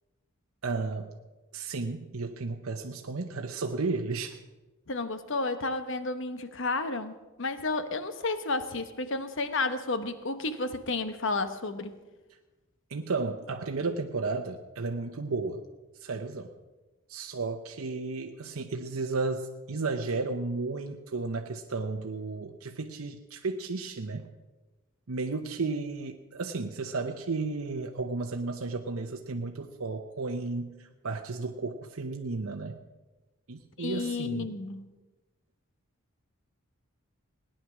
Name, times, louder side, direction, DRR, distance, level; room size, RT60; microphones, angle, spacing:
voice 1, 0.6-1.1 1.5-4.4 12.9-15.7 16.0-16.5 17.1-24.3 25.1-32.8 33.5-34.6, right 3 dB, 85° right, 4 dB, 0.8 m, -33 dB
voice 2, 4.9-11.9 33.8-34.9, left 3 dB, 60° left, 10 dB, 1.0 m, -32 dB
18.0 x 10.0 x 6.2 m, 1.2 s
head